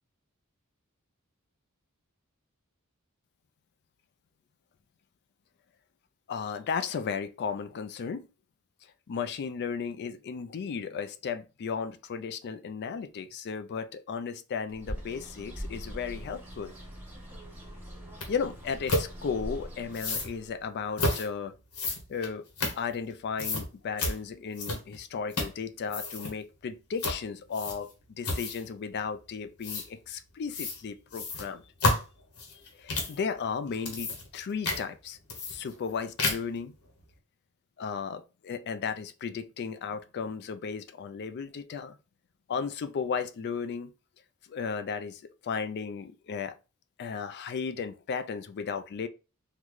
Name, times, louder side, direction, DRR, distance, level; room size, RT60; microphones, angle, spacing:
voice 1, 6.3-8.3 8.8-16.7 18.3-21.5 22.1-22.4 22.7-27.9 28.2-31.6 32.5-35.2 35.5-36.7 37.8-42.0 42.5-43.9 44.5-46.5 47.0-49.1, left 6 dB, 50° left, 0.3 m, -35 dB
Bird, 14.7-20.6, equal, 10° right, 1.0 m, -42 dB
sound 1, 18.2-18.3 18.9-19.1 19.9-20.3 21.0-21.3 21.7-23.1 23.4-23.7 24.0-24.2 24.6-25.0 25.3-25.6 25.9-26.3 27.0-27.2 27.5-27.9 28.2-28.7 29.6-29.9 30.5-30.8 31.1-33.2 33.7-34.4 34.6-34.8 35.3-35.9 36.2-36.6, left 2 dB, 85° left, 1.0 m, -30 dB
3.8 x 2.2 x 3.0 m
head